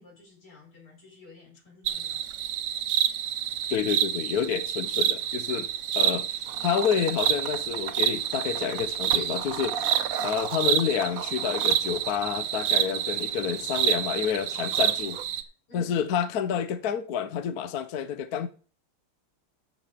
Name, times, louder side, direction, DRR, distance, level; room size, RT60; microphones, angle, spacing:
voice 1, 0.0-2.2 9.7-10.0 15.7-15.9, left 3 dB, 80° left, 6.3 m, -52 dB
sound 1, 1.9-15.4, right 10 dB, 90° right, 1.7 m, -28 dB
voice 2, 3.7-5.7 5.9-9.9 10.2-15.2 15.7-18.5, left 8 dB, 60° left, 1.1 m, -29 dB
sound 2, 6.4-15.2, right 7 dB, 55° right, 1.1 m, -39 dB
13.0 x 6.5 x 5.0 m
omnidirectional pair, 2.3 m